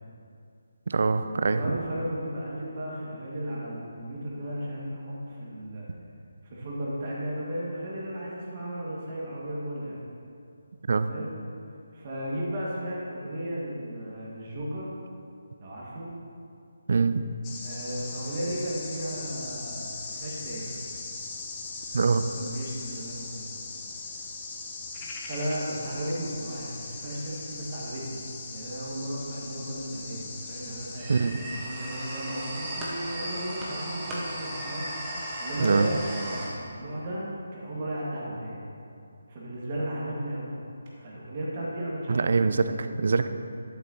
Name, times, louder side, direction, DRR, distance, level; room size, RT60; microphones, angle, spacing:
voice 1, 0.9-1.6 10.9-11.1 16.9-17.2 21.9-22.3 31.1-31.4 35.6-35.9 42.1-43.3, right 4 dB, 50° right, 11 dB, 0.4 m, -24 dB
voice 2, 1.5-5.9 6.4-10.0 11.1-11.3 11.9-14.9 15.6-16.1 17.6-20.7 21.9-22.1 22.4-23.5 25.2-28.2 28.5-34.9 35.4-35.9 36.3-37.3 37.5-38.6 39.3-40.5 41.0-42.8, right 1 dB, 35° right, -5 dB, 2.0 m, -35 dB
sound 1, 17.4-31.0, left 3 dB, 20° left, 0.9 m, -39 dB
sound 2, 31.0-36.5, right 1 dB, 10° right, 1.3 m, -35 dB
11.5 x 7.6 x 2.9 m, 2.5 s
figure-of-eight pair, 150°, 0 cm